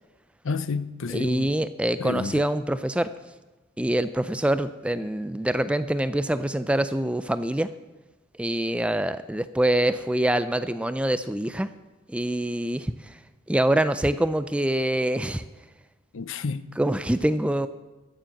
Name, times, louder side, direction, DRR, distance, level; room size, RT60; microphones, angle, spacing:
voice 1, 0.4-1.5 2.0-2.5 16.1-16.7, left 4 dB, 65° left, 0.6 m, -30 dB
voice 2, 1.1-3.1 3.8-7.7 8.4-11.7 12.1-13.2 13.5-15.4 16.8-17.7, right 1 dB, 5° right, 0.3 m, -25 dB
14.0 x 7.4 x 7.7 m
head